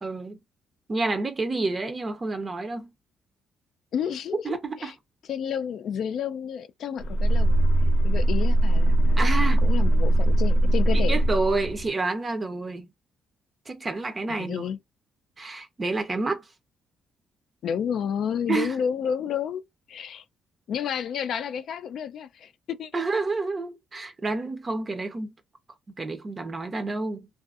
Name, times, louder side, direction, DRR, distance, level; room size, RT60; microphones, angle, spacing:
voice 1, 0.0-0.4 0.9-2.9 4.4-4.9 9.2-9.7 10.9-12.9 13.7-14.7 15.4-16.5 18.5-18.8 22.9-25.3 25.9-27.3, right 3 dB, 30° right, 0.5 m, -29 dB
voice 2, 3.9-4.4 4.8-4.9 5.3-7.6 8.0-11.2 14.3-14.8 17.6-19.6 19.9-20.2 20.7-22.9, left 8 dB, 70° left, 0.4 m, -30 dB
sound 1, 7.0-11.9, right 1 dB, 90° left, 0.7 m, -21 dB
2.6 x 2.4 x 2.3 m
cardioid pair, 90°, 0 cm